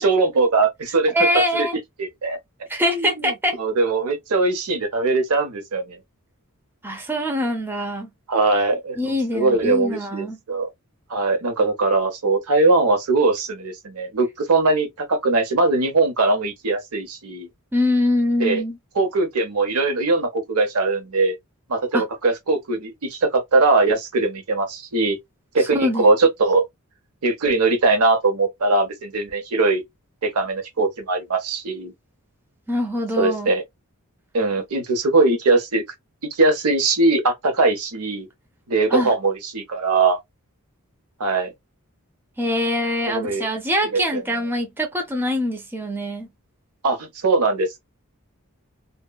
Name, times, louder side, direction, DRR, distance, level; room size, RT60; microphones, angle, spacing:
voice 1, 0.0-1.1 1.5-1.7 2.0-2.4 2.9-3.3 3.6-6.0 8.3-9.0 9.3-10.7 11.1-17.5 18.4-18.6 19.0-21.3 21.7-25.2 25.5-26.6 27.2-29.8 30.2-31.9 33.2-33.6 34.3-35.8 36.3-38.3 38.7-40.2 41.2-41.5 43.1-43.5 43.9-44.0 46.8-47.8, right 3 dB, 80° right, 0.8 m, -20 dB
voice 2, 1.1-1.8 2.7-3.6 6.8-8.1 8.9-10.4 17.7-18.8 21.9-22.0 25.7-26.1 32.7-33.5 38.9-39.1 42.4-46.3, left 1 dB, 10° right, 0.6 m, -23 dB
2.8 x 2.2 x 2.2 m
head